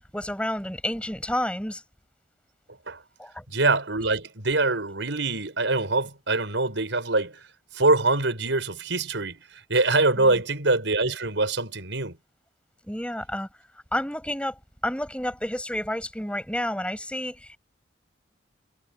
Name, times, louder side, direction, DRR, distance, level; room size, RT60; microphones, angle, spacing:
voice 1, 0.0-1.8 3.2-3.4 10.2-10.4 12.9-13.5 13.9-14.6 14.8-17.6, left 1 dB, 5° left, 8.0 m, -30 dB
voice 2, 3.5-7.4 7.7-12.2, right 3 dB, 90° right, 5.9 m, -24 dB
head